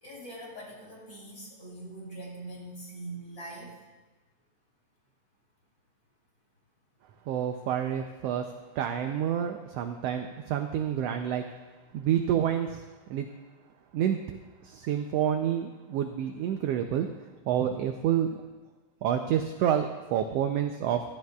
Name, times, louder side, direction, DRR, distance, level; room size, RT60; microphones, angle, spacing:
voice 1, 0.0-3.7, right 1 dB, 30° left, -5 dB, 3.5 m, -42 dB
voice 2, 7.3-8.4 8.7-11.5 11.9-12.8 13.1-13.3 13.9-14.2 14.6-17.1 17.5-18.4 19.0-21.0, right 9 dB, 80° right, 6 dB, 1.5 m, -28 dB
16.0 x 13.0 x 2.3 m, 1.2 s
omnidirectional pair, 3.3 m